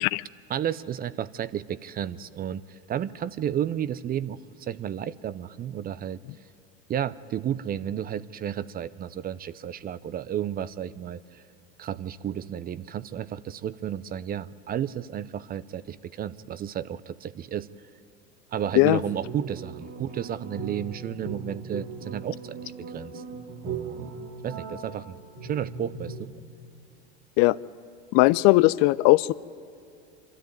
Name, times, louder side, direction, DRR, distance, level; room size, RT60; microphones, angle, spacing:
voice 1, 0.5-6.2 6.9-11.4 11.8-17.7 18.5-23.2 23.6-24.2 24.4-26.3, right 10 dB, 25° right, 17 dB, 0.5 m, -32 dB
sound 1, 19.0-26.2, right 4 dB, 45° right, 3.2 m, -39 dB
voice 2, 28.1-29.3, left 21 dB, 50° left, 19 dB, 0.4 m, -19 dB
25.5 x 13.5 x 9.3 m, 2.5 s
hypercardioid pair, 90°, 34 cm